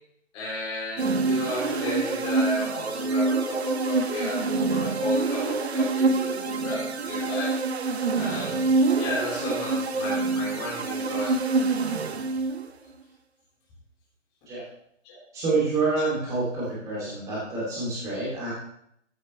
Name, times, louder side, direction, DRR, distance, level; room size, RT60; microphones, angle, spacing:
voice 1, 0.3-7.6 8.1-11.4 15.0-15.2 16.9-17.0, left 1 dB, 15° left, -6 dB, 3.3 m, -33 dB
sound 1, 1.0-12.8, right 3 dB, 55° right, 1.0 m, -26 dB
voice 2, 15.3-18.5, right 3 dB, 10° right, -7 dB, 3.0 m, -27 dB
14.5 x 8.0 x 3.3 m, 0.72 s
hypercardioid pair, 175°, 38 cm